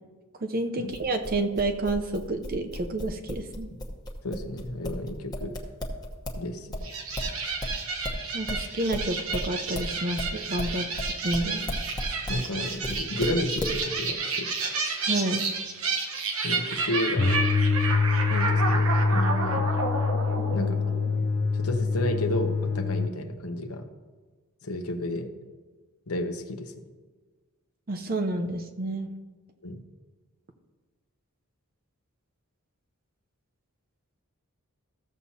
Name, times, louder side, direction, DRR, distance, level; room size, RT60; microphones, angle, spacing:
voice 1, 0.4-3.7 8.3-11.7 15.1-15.5 27.9-29.1, right 2 dB, 40° right, 6 dB, 0.7 m, -29 dB
sound 1, 0.9-6.4 6.7-12.4 12.8-13.8, left 1 dB, 20° left, 1.0 m, -34 dB
voice 2, 4.2-5.5 6.4-6.9 12.3-14.5 16.4-17.4 18.3-19.8 20.5-20.8 21.5-23.8 24.6-25.3 26.1-26.7 29.6-29.8, left 1 dB, 75° left, 6 dB, 0.9 m, -32 dB
sound 2, 6.8-21.5, right 4 dB, 65° right, 1.1 m, -31 dB
sound 3, 17.2-23.1, left 4 dB, 50° left, 0.5 m, -25 dB
14.5 x 7.3 x 2.8 m, 1.3 s
head